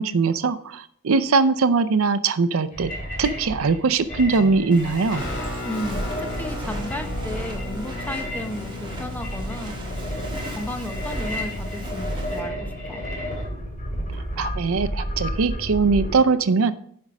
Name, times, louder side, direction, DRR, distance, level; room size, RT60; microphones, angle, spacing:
voice 1, 0.0-2.9 3.2-5.2 14.4-16.7, right 4 dB, 75° right, 14 dB, 0.5 m, -21 dB
sound 1, 2.7-16.1, equal, 35° left, 2.7 m, -31 dB
Walk footsteps, 4.7-12.4, right 1 dB, 20° right, 1.5 m, -39 dB
Guitar, 5.1-14.2, left 3 dB, 60° left, 1.9 m, -37 dB
voice 2, 5.6-10.0 10.5-13.0, equal, 5° left, 6 dB, 0.9 m, -34 dB
9.6 x 6.0 x 5.2 m, 0.65 s
head